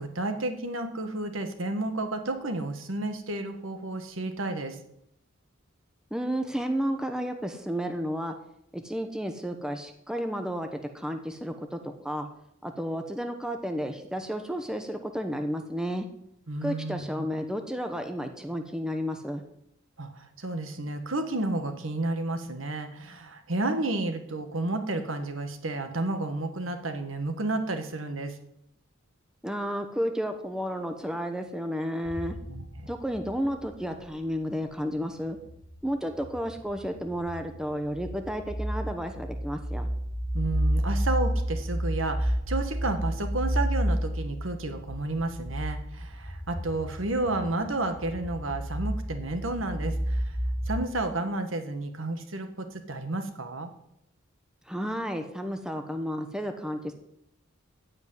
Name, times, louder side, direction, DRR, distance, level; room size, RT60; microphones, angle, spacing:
voice 1, 0.0-4.8 16.5-17.3 20.0-28.4 32.5-32.9 40.3-50.3 50.7-53.7, right 2 dB, 75° right, 7 dB, 1.7 m, -31 dB
voice 2, 6.1-8.3 8.7-12.3 12.6-16.1 16.6-19.4 29.4-32.4 32.9-35.4 35.8-39.9 54.7-56.9, equal, 5° right, 5 dB, 0.9 m, -32 dB
sound 1, 32.0-33.8 35.2-35.8 36.1-50.8, equal, 35° left, 5.2 m, -31 dB
15.0 x 5.4 x 9.4 m, 0.78 s
head